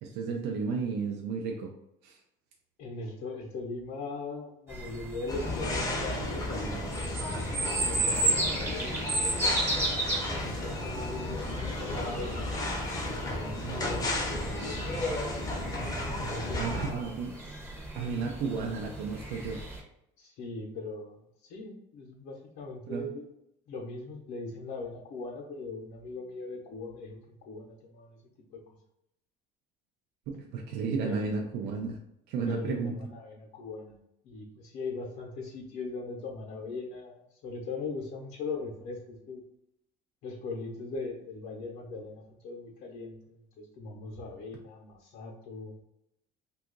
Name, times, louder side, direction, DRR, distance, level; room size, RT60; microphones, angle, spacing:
voice 1, 0.0-1.7 2.0-2.2 16.6-17.3 17.9-19.6 22.9-23.1 30.3-32.0 32.3-33.0, right 5 dB, 65° right, 1 dB, 0.5 m, -33 dB
voice 2, 2.8-9.9 10.3-12.5 13.0-14.8 16.2-17.1 20.2-21.2 21.5-23.3 23.7-28.2 28.5-28.6 31.0-31.6 32.4-34.0 34.2-37.1 37.4-39.4 40.2-45.7, left 3 dB, 65° left, -1 dB, 0.7 m, -40 dB
sound 1, 4.7-19.8, right 2 dB, 15° right, 0.7 m, -35 dB
sound 2, 5.3-16.9, left 2 dB, 20° left, 0.6 m, -33 dB
2.8 x 2.3 x 3.7 m, 0.81 s
cardioid pair, 145°, 18 cm